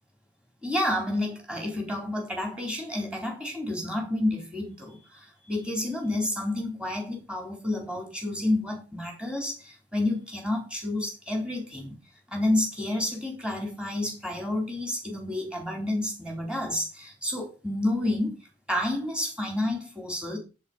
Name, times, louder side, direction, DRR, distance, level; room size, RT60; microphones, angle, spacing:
voice 1, 0.6-12.0 12.3-18.3 18.7-20.4, left 1 dB, 5° right, 3.9 m, -30 dB
8.1 x 7.8 x 5.0 m
head